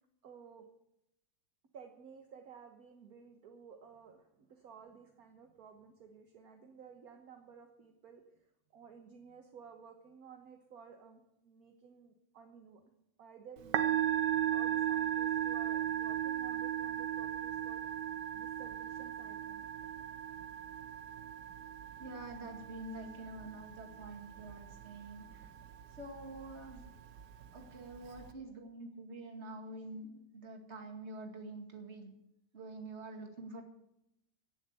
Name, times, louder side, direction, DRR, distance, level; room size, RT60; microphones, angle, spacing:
voice 1, 0.2-0.7 1.7-8.2 8.7-12.8 13.2-17.8 18.3-19.7, right 6 dB, 60° right, 4 dB, 1.6 m, -55 dB
Musical instrument, 13.6-28.3, right 10 dB, 90° right, 1.5 m, -37 dB
voice 2, 22.0-25.5 26.0-26.8 27.5-32.1 32.5-33.6, right 2 dB, 40° right, 3 dB, 2.3 m, -47 dB
17.0 x 7.3 x 8.1 m, 0.83 s
omnidirectional pair, 1.8 m